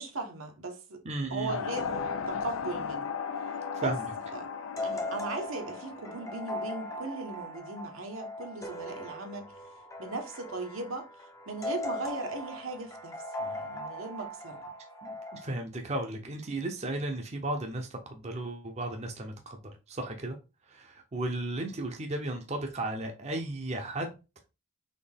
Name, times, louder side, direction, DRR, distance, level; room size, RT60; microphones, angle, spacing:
voice 1, 0.0-1.0 1.3-2.0 2.3-3.1 3.8-4.0 4.3-4.5 4.8-9.5 10.0-11.1 11.5-14.7, right 2 dB, 80° right, 1.0 m, -38 dB
voice 2, 1.0-1.6 3.7-4.1 15.0-20.4 20.7-24.1, right 1 dB, 30° right, 0.6 m, -35 dB
sound 1, 1.5-7.5, left 6 dB, 75° left, 0.4 m, -37 dB
sound 2, 1.8-15.5, left 1 dB, 15° left, 0.5 m, -40 dB
4.2 x 3.2 x 3.4 m
head